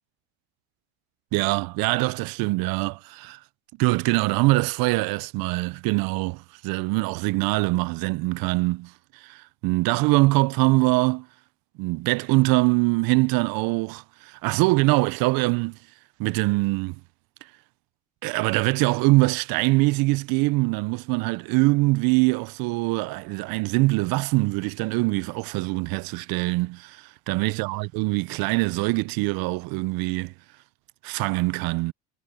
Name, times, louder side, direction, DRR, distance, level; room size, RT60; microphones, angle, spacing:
voice 1, 1.3-3.4 3.8-11.3 11.8-15.8 16.2-17.0 18.2-30.3 31.0-31.9, right 24 dB, 60° right, 0.5 m, -23 dB
cardioid pair, 125°, 40 cm